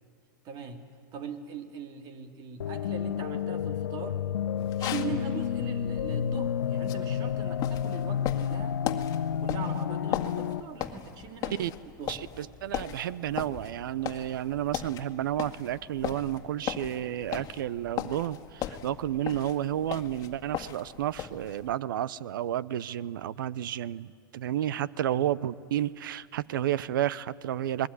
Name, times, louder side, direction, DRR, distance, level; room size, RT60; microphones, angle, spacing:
voice 1, 0.4-0.8 1.1-4.3 4.8-8.8 9.3-12.2 25.1-25.3, right 6 dB, 40° right, 6 dB, 3.0 m, -41 dB
sound 1, 2.6-10.6, left 8 dB, 85° left, 1.1 m, -30 dB
sound 2, 4.6-21.7, left 11 dB, 35° left, 2.0 m, -39 dB
voice 2, 12.1-27.9, right 12 dB, 75° right, 20 dB, 0.8 m, -31 dB
27.5 x 21.5 x 9.8 m, 2.3 s
hypercardioid pair, 125°, 11 cm